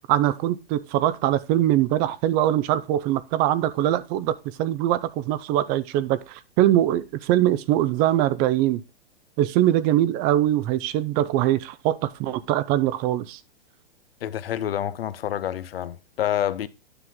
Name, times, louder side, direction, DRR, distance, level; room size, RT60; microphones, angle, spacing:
voice 1, 0.1-8.8 9.4-13.4, right 13 dB, 30° right, 0.6 m, -22 dB
voice 2, 14.2-16.7, left 11 dB, 70° left, 0.8 m, -28 dB
9.9 x 5.9 x 3.7 m
hypercardioid pair, 115°, 31 cm